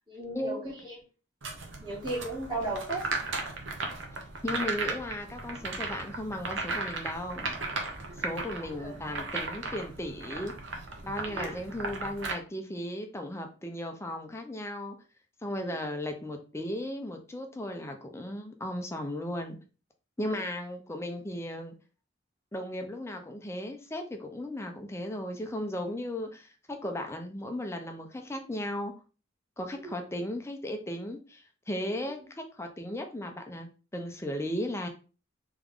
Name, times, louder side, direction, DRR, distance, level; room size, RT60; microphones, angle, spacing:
voice 1, 0.1-1.0 1.8-3.1 8.1-9.0 11.2-11.7 15.5-15.8 20.3-20.5 29.8-30.0 31.8-32.1, right 2 dB, 25° right, -8 dB, 1.8 m, -37 dB
sound 1, 1.4-12.3, right 3 dB, 70° right, 0.9 m, -36 dB
voice 2, 4.4-7.6 8.2-10.5 11.0-15.0 15.4-19.6 20.2-21.7 22.5-28.9 29.6-34.9, left 1 dB, 15° left, 5 dB, 0.6 m, -36 dB
3.5 x 3.5 x 3.6 m, 0.35 s
head